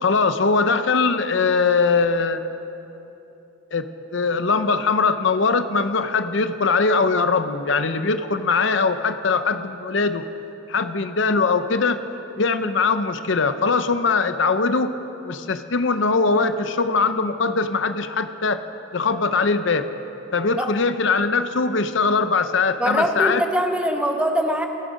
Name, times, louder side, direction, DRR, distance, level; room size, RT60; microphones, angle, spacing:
voice 1, 0.0-2.4 3.7-3.8 4.1-10.2 10.7-12.0 12.4-14.9 15.2-18.6 18.9-19.9 20.3-23.4, left 4 dB, 60° left, 10 dB, 0.7 m, -21 dB
voice 2, 22.8-24.7, equal, 5° right, 4 dB, 0.9 m, -22 dB
27.0 x 10.0 x 5.2 m, 2.9 s
head